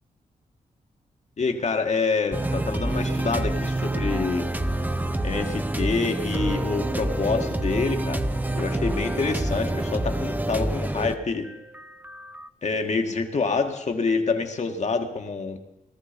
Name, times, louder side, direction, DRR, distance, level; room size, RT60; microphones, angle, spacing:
voice 1, 1.4-4.5 5.2-8.2 8.5-11.4 12.6-15.6, left 4 dB, 50° left, 5 dB, 1.8 m, -27 dB
sound 1, 2.3-12.5, right 1 dB, 10° right, 0.7 m, -27 dB
18.0 x 13.5 x 5.2 m, 0.93 s
cardioid pair, 85°, 15 cm